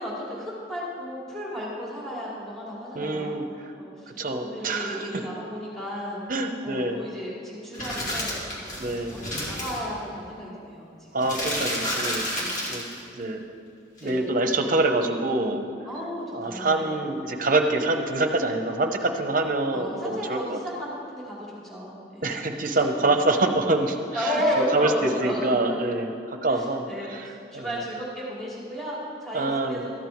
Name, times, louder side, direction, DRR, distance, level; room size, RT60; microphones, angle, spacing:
voice 1, 0.0-3.4 3.8-6.2 6.6-11.2 12.4-12.6 14.0-14.3 15.8-17.0 19.7-22.4 22.7-23.2 24.1-25.8 26.5-30.1, equal, ahead, -6 dB, 2.5 m, -33 dB
voice 2, 2.9-3.4 4.2-5.1 6.3-7.1 8.8-9.1 11.1-12.3 12.7-12.8 13.2-13.4 14.0-15.6 16.3-20.6 22.2-24.4 24.7-26.9 27.1-27.7 29.3-29.8, right 2 dB, 45° right, 5 dB, 0.8 m, -25 dB
sound 1, 7.7-9.8 11.2-13.0 14.0-14.1, equal, 45° left, 2.6 m, -30 dB
13.5 x 9.0 x 4.6 m, 2.4 s
head